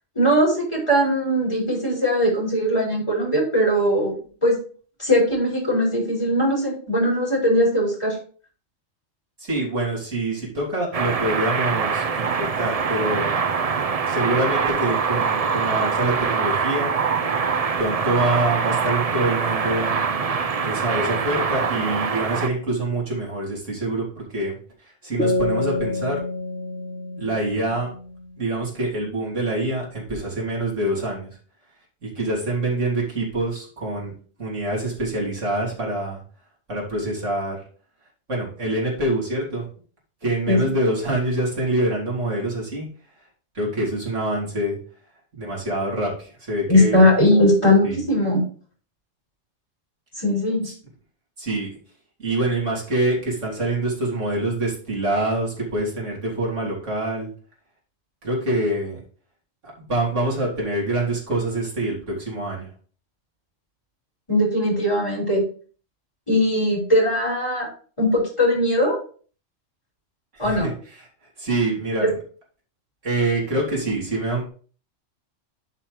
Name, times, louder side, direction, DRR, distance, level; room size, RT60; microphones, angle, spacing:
voice 1, 0.2-4.1 4.4-4.6 5.0-8.2 40.5-40.7 46.7-48.4 50.2-50.7 64.3-65.5 66.3-67.7 68.0-69.0 70.4-70.7 72.0-72.1, left 1 dB, 25° left, -3 dB, 5.0 m, -19 dB
voice 2, 9.4-13.4 14.0-16.9 17.8-20.0 20.6-26.2 27.2-27.9 28.4-31.3 32.0-34.1 34.4-36.2 36.7-37.6 38.3-39.7 40.2-42.9 43.5-44.8 45.3-47.1 47.8-48.0 50.6-50.7 51.4-51.7 52.2-57.3 58.2-59.0 59.8-62.7 70.3-71.1 71.4-72.1 73.0-74.5, right 1 dB, 85° right, -5 dB, 3.7 m, -25 dB
sound 1, 10.9-22.5, right 5 dB, 40° right, 0.6 m, -24 dB
sound 2, 25.2-28.7, left 2 dB, 10° left, 4.0 m, -27 dB
10.5 x 5.7 x 3.3 m, 0.42 s
omnidirectional pair, 1.2 m